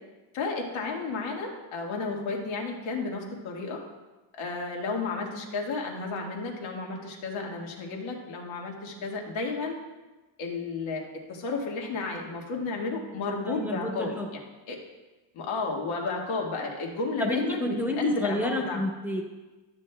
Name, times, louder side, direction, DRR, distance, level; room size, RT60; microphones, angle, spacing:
voice 1, 0.3-3.8 4.3-9.8 10.4-14.1 14.7-14.8 15.3-18.8, left 3 dB, 80° left, 0 dB, 1.8 m, -32 dB
voice 2, 13.5-14.3 17.2-19.2, left 1 dB, 5° right, 1 dB, 0.9 m, -30 dB
12.5 x 8.4 x 2.3 m, 1.2 s
cardioid pair, 145°, 47 cm